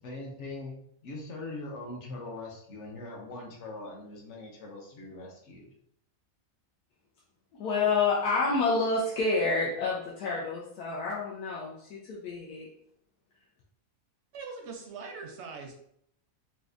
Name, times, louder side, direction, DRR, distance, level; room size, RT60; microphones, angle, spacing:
voice 1, 0.0-0.8 1.0-5.7, left 2 dB, 55° left, -1 dB, 1.0 m, -41 dB
voice 2, 7.5-12.7, left 3 dB, 90° left, -4 dB, 1.2 m, -28 dB
voice 3, 14.3-15.8, right 4 dB, 65° right, 2 dB, 0.7 m, -41 dB
4.1 x 2.3 x 2.4 m, 0.70 s
omnidirectional pair, 1.6 m